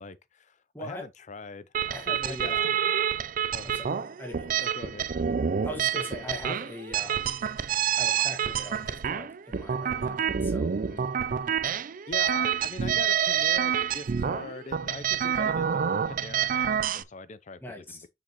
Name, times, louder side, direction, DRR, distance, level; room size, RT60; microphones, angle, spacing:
voice 1, 0.0-1.7 2.1-2.8 3.5-3.7 4.6-5.1 8.8-8.9 9.9-10.2 10.9-11.1 12.1-18.1, left 3 dB, 40° left, 0.6 m, -42 dB
sound 1, 1.7-17.0, right 8 dB, 50° right, 0.4 m, -28 dB
voice 2, 1.9-2.7 3.6-4.7 5.6-7.3 8.0-10.7 15.3-15.6 17.6-18.0, left 1 dB, 10° left, 1.9 m, -41 dB
6.5 x 6.2 x 3.0 m
head